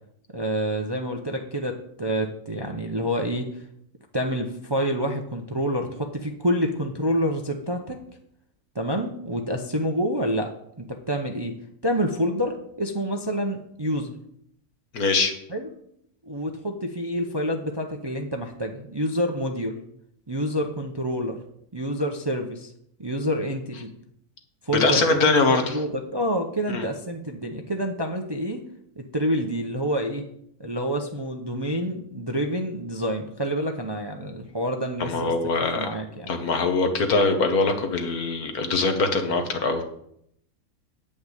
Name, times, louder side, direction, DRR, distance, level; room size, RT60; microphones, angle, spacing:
voice 1, 0.3-3.6 4.1-8.0 8.7-10.5 10.8-11.6 11.8-14.1 15.5-15.7 16.3-19.8 20.3-21.4 21.7-22.7 23.0-23.9 24.6-28.6 29.0-30.2 30.6-35.3 35.7-36.3, equal, 25° right, 3 dB, 0.6 m, -27 dB
voice 2, 14.9-15.3 24.8-25.8 26.7-26.9 35.0-35.9 36.3-39.8, left 3 dB, 80° left, 6 dB, 1.8 m, -22 dB
8.7 x 5.5 x 8.0 m, 0.72 s
omnidirectional pair, 1.6 m